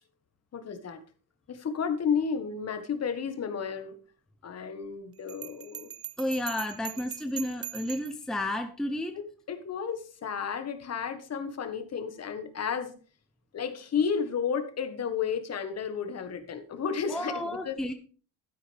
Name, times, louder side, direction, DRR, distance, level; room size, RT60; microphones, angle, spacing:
voice 1, 0.5-1.0 1.5-4.0 4.4-5.9 9.5-12.9 13.5-17.8, left 6 dB, 40° left, 8 dB, 1.6 m, -32 dB
Bell, 5.3-8.2, right 10 dB, 35° right, 0.7 m, -40 dB
voice 2, 6.2-9.2 17.1-17.9, left 1 dB, ahead, 7 dB, 0.8 m, -32 dB
12.0 x 10.0 x 3.5 m, 0.39 s
cardioid pair, 125°, 40 cm